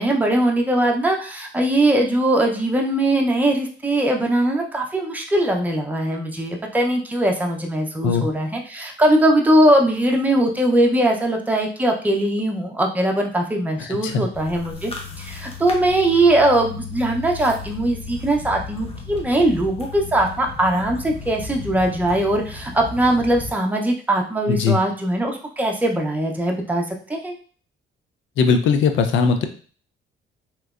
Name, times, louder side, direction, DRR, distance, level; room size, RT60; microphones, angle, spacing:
voice 1, 0.0-14.9 15.2-26.8 27.1-27.3, right 1 dB, 10° right, 1 dB, 0.6 m, -20 dB
voice 2, 13.8-14.2 24.5-24.8 28.4-29.5, left 5 dB, 75° left, 7 dB, 0.5 m, -19 dB
sound 1, 14.3-23.5, left 5 dB, 30° left, 0.7 m, -35 dB
3.2 x 3.0 x 2.4 m, 0.41 s
cardioid pair, 90°, 20 cm